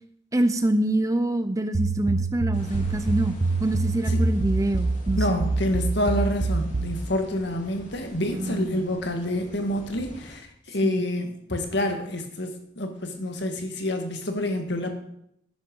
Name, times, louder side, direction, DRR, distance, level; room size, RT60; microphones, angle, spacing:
voice 1, 0.3-5.4 8.3-8.8 10.8-11.0, right 1 dB, 15° right, 10 dB, 0.5 m, -26 dB
sound 1, 1.7-7.0, right 3 dB, 60° right, 0.8 m, -26 dB
sound 2, 2.5-10.4, equal, 35° left, 2.5 m, -44 dB
voice 2, 5.2-12.5 12.8-15.0, left 1 dB, 55° left, 5 dB, 1.9 m, -28 dB
11.5 x 9.9 x 5.4 m, 0.75 s
head